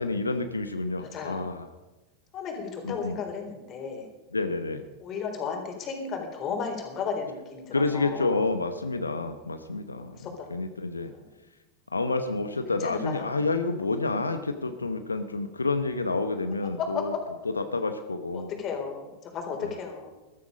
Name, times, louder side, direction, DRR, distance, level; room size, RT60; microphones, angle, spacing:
voice 1, 0.0-1.7 2.8-3.2 4.3-4.8 7.7-10.2 10.5-11.1 11.9-17.1 17.4-18.5 19.6-19.7, left 3 dB, 85° left, 9 dB, 0.9 m, -29 dB
voice 2, 1.0-1.4 2.3-4.1 5.0-8.5 10.0-10.3 11.1-11.2 12.8-13.4 16.8-17.0 18.3-20.1, left 6 dB, 35° left, 3 dB, 3.9 m, -34 dB
14.5 x 13.5 x 5.2 m, 1.1 s
figure-of-eight pair, 90°, 0 cm